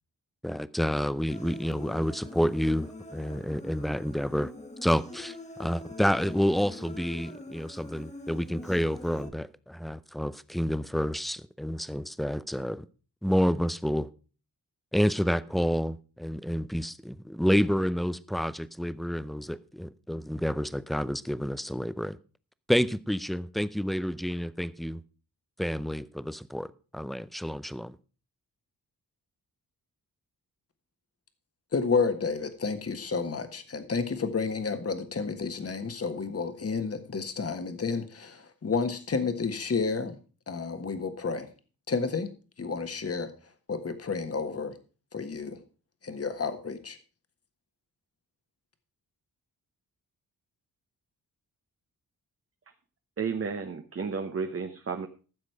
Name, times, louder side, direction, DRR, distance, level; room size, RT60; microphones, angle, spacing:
voice 1, 0.4-4.5 4.8-12.8 13.2-14.1 14.9-22.2 22.7-25.0 25.6-27.9, equal, ahead, 0.5 m, -29 dB
Human voice, 1.3-9.3, left 2 dB, 20° left, 1.5 m, -44 dB
voice 2, 31.7-40.2 40.5-41.5 41.9-42.3 42.6-44.8 45.1-45.6 46.0-47.0, left 4 dB, 40° left, 1.6 m, -31 dB
voice 3, 53.2-55.1, right 5 dB, 40° right, 1.0 m, -32 dB
14.0 x 7.4 x 4.7 m
wide cardioid pair, 125°, 36 cm